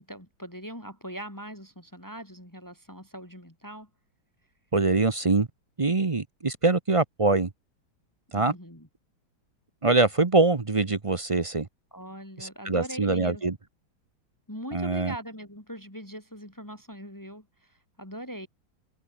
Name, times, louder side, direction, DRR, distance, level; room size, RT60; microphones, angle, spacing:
voice 1, 0.0-3.9 8.3-8.9 11.9-13.4 14.5-18.5, equal, 10° left, 3.8 m, -41 dB
voice 2, 4.7-5.5 5.8-7.5 8.3-8.5 9.8-11.7 12.4-13.6 14.7-15.1, right 3 dB, 35° right, 0.5 m, -24 dB
omnidirectional pair, 2.2 m